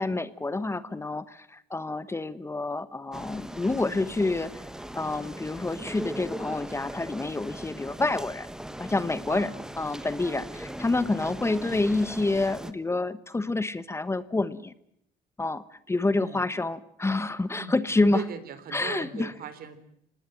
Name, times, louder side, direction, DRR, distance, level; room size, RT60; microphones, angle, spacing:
voice 1, 0.0-4.5 4.9-8.5 8.8-14.7 15.4-18.2 18.7-19.3, left 2 dB, 15° left, 15 dB, 1.1 m, -28 dB
sound 1, 3.1-12.7, right 1 dB, 5° right, 1.5 m, -39 dB
voice 2, 16.1-16.5 17.5-17.8 18.1-19.8, right 7 dB, 60° right, 13 dB, 3.7 m, -38 dB
26.0 x 19.5 x 9.0 m, 0.73 s
cardioid pair, 110°, 17 cm